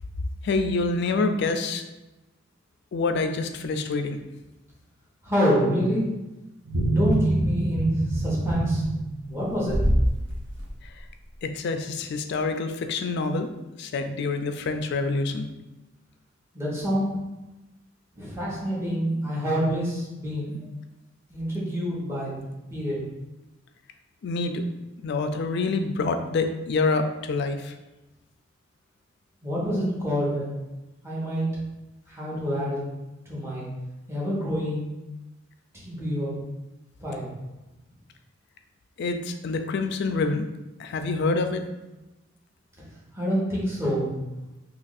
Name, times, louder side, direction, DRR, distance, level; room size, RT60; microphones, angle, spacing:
voice 1, 0.4-1.8 2.9-4.2 11.4-13.5 13.8-15.5 24.2-24.7 25.0-27.7 39.0-40.5 40.8-41.6, left 3 dB, 60° left, 7 dB, 0.3 m, -26 dB
voice 2, 5.2-6.0 6.9-8.8 9.2-10.0 16.5-17.1 18.1-20.7 21.3-22.3 22.7-23.0 29.4-30.5 31.0-31.5 32.1-32.8 33.3-33.7 34.1-34.9 35.7-36.3 37.0-37.3 43.2-44.2, equal, 15° right, -7 dB, 1.0 m, -27 dB
sound 1, 6.7-10.1 10.6-10.7, right 1 dB, 60° right, 0.7 m, -24 dB
2.9 x 2.5 x 4.0 m, 1.0 s
head